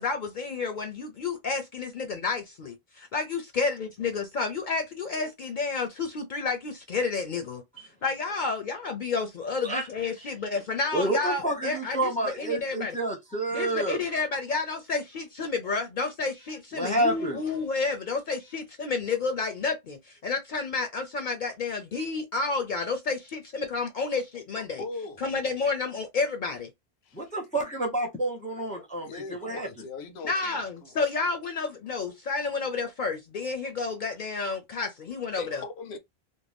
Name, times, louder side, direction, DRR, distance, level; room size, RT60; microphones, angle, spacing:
voice 1, 0.0-7.6 8.0-12.9 13.5-24.8 25.2-26.7 28.6-28.9 30.2-35.6, left 4 dB, 55° left, 0.6 m, -30 dB
voice 2, 10.9-14.0 16.7-17.4 27.1-29.7, right 2 dB, 10° left, 0.6 m, -29 dB
voice 3, 24.8-25.2 27.0-27.3 29.0-31.0 35.4-36.0, left 3 dB, 85° left, 0.9 m, -39 dB
2.6 x 2.1 x 3.3 m
omnidirectional pair, 1.1 m